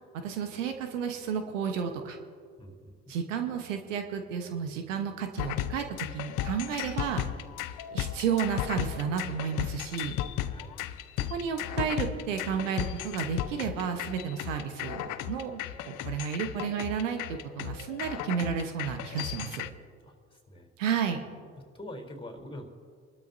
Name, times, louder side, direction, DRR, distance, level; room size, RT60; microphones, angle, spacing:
voice 1, 0.2-2.2 3.1-7.2 7.9-10.2 11.3-19.6 20.8-21.2, right 7 dB, 80° right, 6 dB, 1.1 m, -32 dB
voice 2, 2.6-3.1 10.4-10.9 20.0-20.7 21.7-22.7, left 1 dB, 15° left, 3 dB, 3.5 m, -45 dB
sound 1, 5.4-19.7, left 12 dB, 55° left, 0.7 m, -35 dB
28.0 x 12.5 x 2.7 m, 2.1 s
hypercardioid pair, 60°, 37 cm